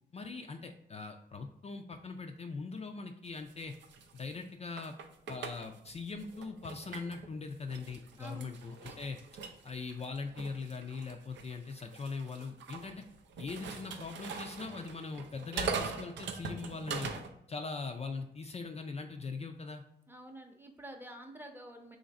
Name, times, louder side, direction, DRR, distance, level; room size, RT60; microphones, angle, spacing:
voice 1, 0.1-3.7 4.1-4.9 5.3-9.2 9.6-13.0 13.4-17.1 17.5-19.8, left 4 dB, 35° left, 4 dB, 0.4 m, -41 dB
sound 1, 3.3-7.3 7.7-17.3, right 5 dB, 85° right, 0.5 m, -42 dB
voice 2, 8.2-8.5 8.9-9.0 20.1-22.0, right 1 dB, 10° right, 3 dB, 0.7 m, -48 dB
3.2 x 2.5 x 4.0 m, 0.78 s
cardioid pair, 55°, 18 cm